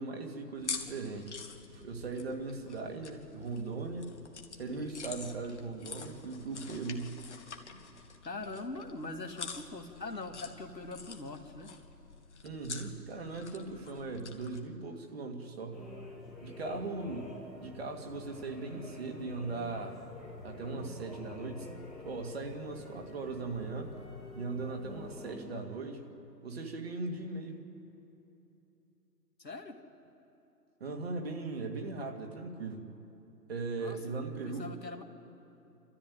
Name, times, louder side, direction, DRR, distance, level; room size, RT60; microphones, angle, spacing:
voice 1, 0.0-1.3 1.7-4.1 4.5-7.3 12.4-15.8 16.4-20.0 20.4-21.7 22.0-24.0 24.3-26.0 26.4-27.6 30.8-32.9 33.5-34.7, right 3 dB, 35° right, 2 dB, 2.3 m, -39 dB
sound 1, 0.5-14.6, left 5 dB, 45° left, 1.8 m, -46 dB
voice 2, 8.2-11.7 29.4-29.8 33.8-34.2 34.4-35.0, left 3 dB, 75° left, 3 dB, 2.2 m, -42 dB
sound 2, 15.7-25.4, left 2 dB, ahead, 1.6 m, -47 dB
27.5 x 13.5 x 9.3 m, 3.0 s
figure-of-eight pair, 145°, 50 cm